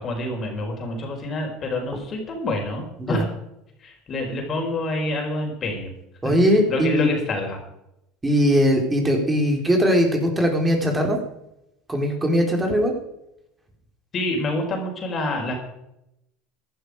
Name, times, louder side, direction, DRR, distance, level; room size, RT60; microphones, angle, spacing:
voice 1, 0.0-3.3 3.8-5.9 6.7-7.6 14.1-15.6, left 2 dB, 40° left, 1 dB, 4.7 m, -27 dB
voice 2, 6.2-7.1 8.2-11.2 11.9-12.9, equal, 15° right, 2 dB, 4.5 m, -20 dB
14.5 x 12.0 x 5.1 m, 0.83 s
hypercardioid pair, 80°, 0 cm